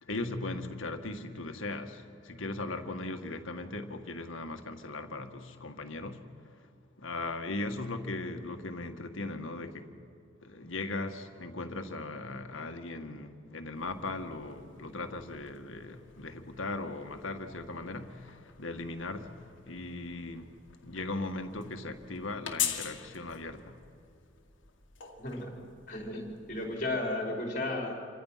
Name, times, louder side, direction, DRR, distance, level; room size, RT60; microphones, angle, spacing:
voice 1, 0.0-6.3 6.6-6.7 7.0-9.9 10.4-20.6 20.8-23.8, left 2 dB, 90° left, 1.8 m, -38 dB
sound 1, 13.7-27.2, left 10 dB, 70° left, 2.1 m, -44 dB
voice 2, 25.2-25.5 25.9-27.9, left 2 dB, 40° left, 4.8 m, -34 dB
28.0 x 25.0 x 5.8 m
head